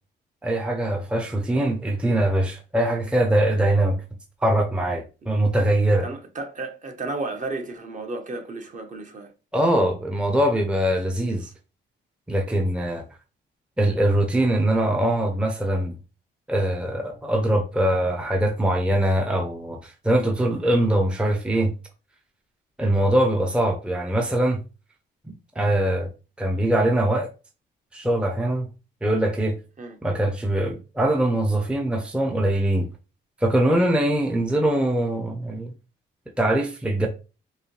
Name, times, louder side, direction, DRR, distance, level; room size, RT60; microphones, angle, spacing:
voice 1, 0.4-4.0 4.4-6.1 9.5-11.5 12.3-13.0 13.8-16.0 16.5-21.7 22.8-24.6 25.3-26.1 26.4-27.3 27.9-28.7 29.0-29.5 30.0-32.9 33.4-35.7 36.4-37.1, right 1 dB, 5° right, 0.6 m, -22 dB
voice 2, 6.0-9.3 29.8-30.0, right 3 dB, 40° right, 1.0 m, -33 dB
5.3 x 2.2 x 3.2 m
cardioid pair, 90°, 20 cm